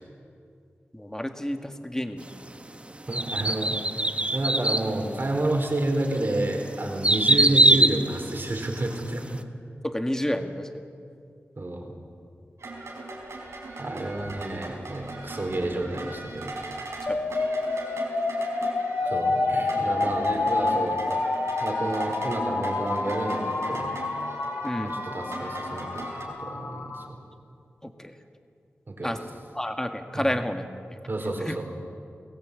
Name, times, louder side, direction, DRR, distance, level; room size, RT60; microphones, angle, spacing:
voice 1, 0.9-2.3 9.8-10.8 17.1-17.3 24.6-24.9 27.8-28.1 29.0-29.2 29.6-31.0 31.5-31.6, left 1 dB, 10° left, 6 dB, 1.9 m, -30 dB
sound 1, 3.1-4.9 5.5-5.6 6.2-9.0 9.3-9.4, right 1 dB, 25° right, 1.3 m, -22 dB
voice 2, 3.1-3.8 4.3-9.4 11.6-11.9 13.8-16.5 19.0-21.0 21.6-24.0 24.8-27.2 28.9-29.2 30.1-30.3 31.1-31.7, right 1 dB, 50° right, 2 dB, 4.2 m, -30 dB
sound 2, 12.6-26.2, right 2 dB, 85° right, 4.9 m, -40 dB
sound 3, 17.1-27.1, left 3 dB, 65° left, 1.8 m, -28 dB
22.0 x 16.5 x 8.4 m, 2.4 s
cardioid pair, 55°, 5 cm